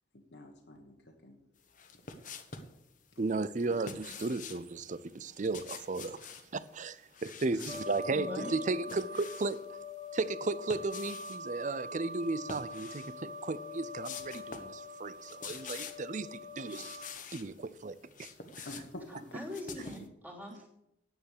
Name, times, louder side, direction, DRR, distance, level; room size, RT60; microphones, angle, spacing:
voice 1, 0.3-1.4 3.6-3.8 4.1-4.4 7.5-7.6 18.6-19.2, left 1 dB, 70° left, 1.5 m, -48 dB
sound 1, 1.7-2.7 3.6-4.7 5.3-6.5 7.1-8.1 8.5-9.6 10.5-11.4 12.4-13.2 13.5-13.6 14.0-14.8 15.1-16.1 16.6-17.5 17.9-20.1, left 5 dB, 45° left, 1.2 m, -47 dB
voice 2, 3.2-6.2 6.5-9.6 10.1-17.0 17.3-18.3 18.6-18.7, right 3 dB, 40° right, 0.5 m, -35 dB
sound 2, 7.7-17.1, left 3 dB, 60° right, 2.8 m, -44 dB
voice 3, 8.1-8.6 19.3-20.7, equal, 10° right, 3.2 m, -42 dB
9.9 x 8.9 x 6.7 m
head